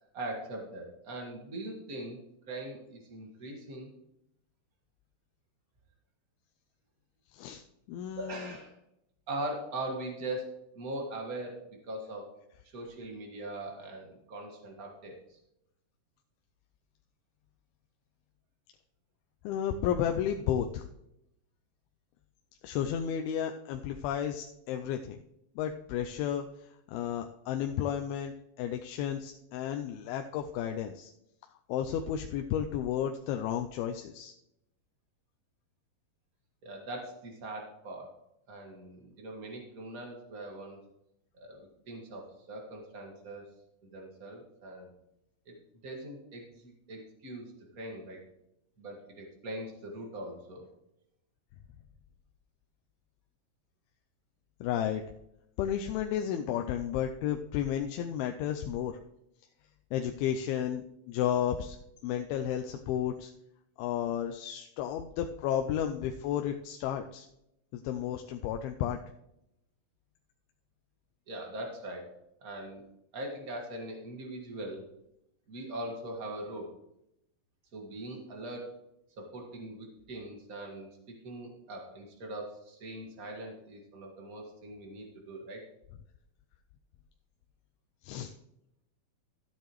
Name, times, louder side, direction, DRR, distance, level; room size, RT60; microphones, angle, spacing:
voice 1, 0.1-2.2 2.5-3.9 8.2-8.8 9.3-12.3 12.6-15.4 36.6-38.1 38.5-40.8 41.3-43.5 43.8-44.9 45.4-45.6 45.8-48.2 48.8-50.7 71.3-72.1 72.4-72.8 73.1-74.8 75.5-76.7 77.7-78.6 79.2-85.6, right 1 dB, 40° right, 1 dB, 1.4 m, -41 dB
voice 2, 7.9-8.5 19.4-20.8 22.6-25.2 25.6-26.4 26.9-31.1 31.7-34.3 54.6-55.0 55.6-58.9 59.9-61.8 62.0-63.3 63.8-67.3 67.8-69.0 88.0-88.3, left 9 dB, 90° left, 4 dB, 2.5 m, -32 dB
13.5 x 8.5 x 3.1 m, 0.81 s
omnidirectional pair, 4.3 m